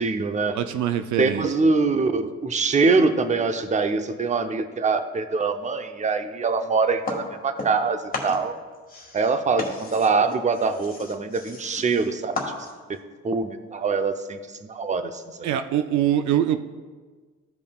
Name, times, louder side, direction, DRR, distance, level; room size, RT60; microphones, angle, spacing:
voice 1, 0.0-0.6 1.2-8.6 9.1-13.0 13.2-14.4 14.7-15.5, right 4 dB, 25° right, 9 dB, 0.6 m, -24 dB
voice 2, 0.5-1.7 15.4-16.6, right 11 dB, 70° right, 10 dB, 0.5 m, -24 dB
sound 1, 7.0-7.9 8.1-13.0, left 3 dB, 30° left, 1.8 m, -35 dB
15.0 x 5.2 x 2.3 m, 1.4 s
cardioid pair, 90°, 30 cm